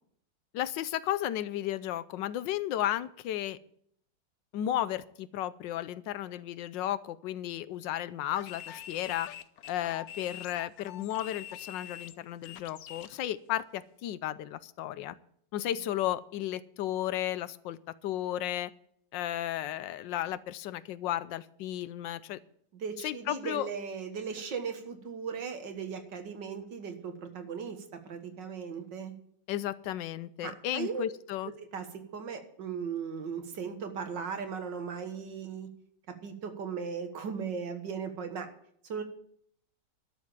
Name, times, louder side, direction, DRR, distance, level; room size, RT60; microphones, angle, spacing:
voice 1, 0.5-3.6 4.5-9.3 9.7-15.2 15.5-17.8 18.0-18.7 19.1-22.4 23.0-23.7 29.5-31.5, left 12 dB, 85° left, 16 dB, 1.4 m, -34 dB
sound 1, 8.3-13.2, left 10 dB, 65° left, 1.0 m, -45 dB
voice 2, 22.7-29.1 30.4-31.0 31.6-35.7 36.2-38.5 38.9-39.0, right 6 dB, 80° right, 7 dB, 2.1 m, -37 dB
12.0 x 7.1 x 8.9 m, 0.67 s
omnidirectional pair, 1.9 m